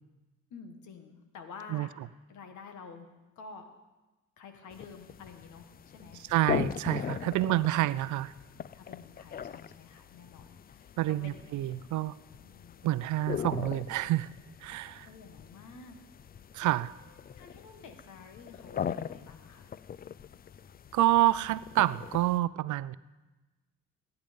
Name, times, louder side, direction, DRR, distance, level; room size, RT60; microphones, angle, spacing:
voice 1, 0.5-1.9 2.3-3.1 3.3-3.6 4.4-6.2 7.2-7.9 8.7-11.4 12.4-12.9 15.0-16.0 17.4-19.7, left 5 dB, 75° left, 6 dB, 1.7 m, -50 dB
sound 1, 4.7-22.4, left 8 dB, 30° left, 0.4 m, -40 dB
voice 2, 6.3-8.3 11.0-12.1 12.8-14.3 14.6-15.1 16.5-16.9 20.9-22.9, right 15 dB, 75° right, 17 dB, 0.5 m, -28 dB
17.5 x 9.2 x 5.3 m, 1.1 s
cardioid pair, 90°, 30 cm